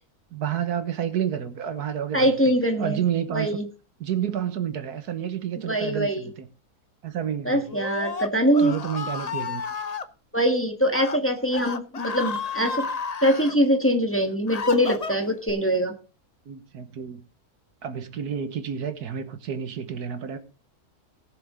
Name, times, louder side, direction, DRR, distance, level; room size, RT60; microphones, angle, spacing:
voice 1, 0.3-2.3 2.8-3.6 4.0-6.5 7.0-7.7 8.6-9.6 16.5-17.2 17.8-20.4, right 9 dB, 85° right, 1.7 m, -30 dB
voice 2, 2.1-3.0 3.3-3.6 5.7-6.2 7.4-8.8 10.3-12.9 13.2-15.9, equal, 10° left, 1.4 m, -23 dB
Screaming, 7.7-10.1 10.8-11.2 11.5-13.6 14.1-15.5, left 5 dB, 40° left, 0.6 m, -32 dB
18.5 x 7.0 x 3.7 m
omnidirectional pair, 1.6 m